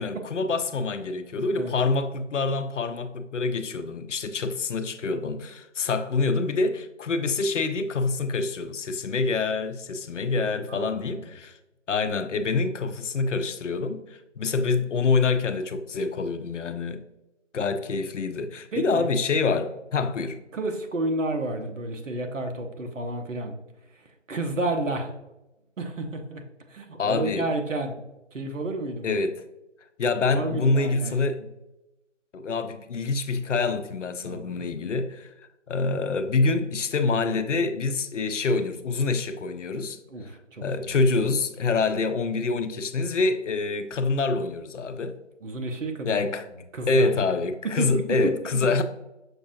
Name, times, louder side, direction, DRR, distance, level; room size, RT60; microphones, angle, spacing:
voice 1, 0.0-11.5 11.9-14.0 14.4-17.0 17.5-20.4 27.0-27.5 29.0-29.4 30.0-31.4 32.3-35.3 35.7-40.0 40.6-45.2 46.1-46.4 46.9-48.8, left 3 dB, 75° left, 0.5 m, -26 dB
voice 2, 1.6-1.9 10.5-11.2 18.7-19.1 20.5-23.6 24.3-25.1 25.8-26.4 26.7-28.0 28.3-29.2 30.3-31.5 34.2-35.0 40.1-41.0 45.4-46.2 46.7-47.2 47.6-48.3, right 2 dB, 90° right, 0.9 m, -31 dB
5.9 x 2.5 x 2.6 m
figure-of-eight pair, 180°, 37 cm